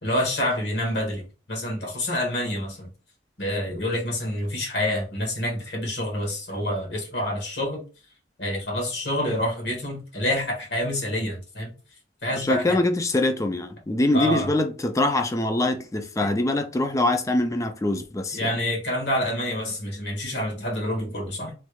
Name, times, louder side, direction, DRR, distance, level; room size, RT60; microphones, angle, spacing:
voice 1, 0.0-2.9 3.4-7.8 8.4-11.7 12.2-12.8 14.1-14.5 18.3-21.5, left 1 dB, 70° left, 1.4 m, -27 dB
voice 2, 12.4-18.6, left 2 dB, 15° left, 0.4 m, -24 dB
3.1 x 2.3 x 3.1 m
head